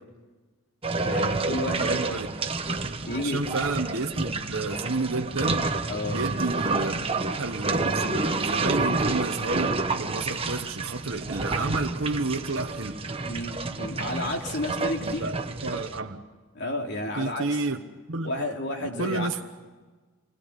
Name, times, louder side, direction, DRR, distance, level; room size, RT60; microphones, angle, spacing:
sound 1, 0.8-16.0, right 3 dB, 25° right, 1.2 m, -29 dB
voice 1, 1.0-2.0 3.1-3.4 5.9-6.2 13.3-15.3 16.5-17.6 18.2-19.3, left 1 dB, 50° left, 3.6 m, -31 dB
voice 2, 1.7-2.4 3.2-5.7 6.0-7.1 7.4-13.0 15.0-16.3 17.1-18.3 19.0-19.4, right 3 dB, 60° right, 1.2 m, -31 dB
28.0 x 21.0 x 8.3 m
head